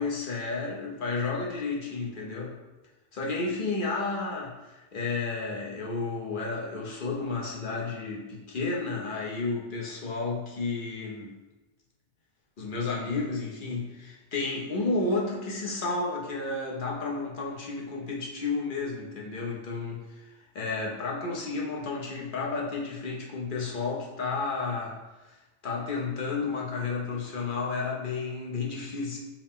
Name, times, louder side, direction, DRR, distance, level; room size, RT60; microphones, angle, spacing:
voice 1, 0.0-2.6 3.1-11.4 12.6-25.0 25.6-29.2, left 3 dB, 55° left, -2 dB, 0.8 m, -32 dB
4.7 x 2.1 x 3.5 m, 1.1 s
omnidirectional pair, 1.1 m